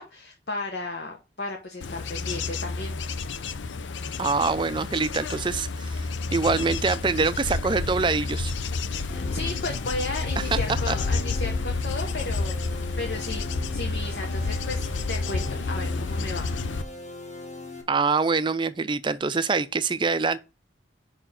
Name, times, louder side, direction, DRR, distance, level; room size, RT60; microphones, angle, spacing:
voice 1, 0.0-3.0 8.9-12.5 13.0-16.5, left 2 dB, 60° left, 1.0 m, -34 dB
Bird / Insect / Wind, 1.8-16.8, left 3 dB, 80° left, 0.5 m, -30 dB
voice 2, 4.2-8.5 10.5-10.6 10.9-11.0 17.9-20.4, right 4 dB, 25° right, 0.4 m, -25 dB
sound 1, 9.1-17.8, left 2 dB, 40° left, 1.4 m, -41 dB
5.1 x 4.5 x 5.8 m
head